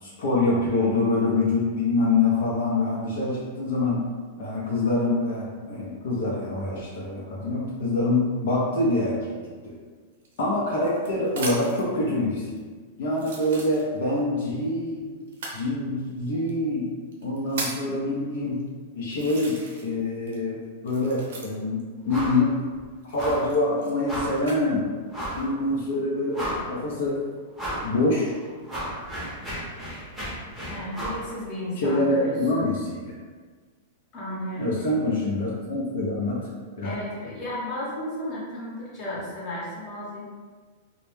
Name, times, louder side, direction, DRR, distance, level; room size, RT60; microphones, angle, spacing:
voice 1, 0.0-4.0 4.4-9.3 9.6-9.7 10.4-12.6 13.0-15.1 15.5-16.9 17.2-18.7 18.9-21.8 22.0-22.6 23.0-24.9 25.3-27.2 27.8-28.3 31.8-33.1 34.6-36.4 36.8-36.9, left 2 dB, 70° left, -5 dB, 0.5 m, -25 dB
sound 1, 10.2-11.9 12.6-12.7 13.1-14.2 15.3-15.6 16.5-16.6 17.1-17.9 18.6-18.7 19.1-20.0 20.3-21.8 23.0-24.6 25.2-25.7, right 3 dB, 75° right, 0.6 m, -37 dB
sound 2, 22.1-22.4 22.7-22.8 23.2-23.5 24.1-24.4 25.1-25.5 25.9-26.0 26.3-26.9 27.6-27.9 28.3-31.2, equal, ahead, 0.8 m, -33 dB
voice 2, 30.7-32.7 34.1-34.7 36.8-40.2, left 1 dB, 30° left, -7 dB, 0.9 m, -34 dB
2.1 x 2.1 x 3.1 m, 1.5 s
supercardioid pair, 155°, 0 cm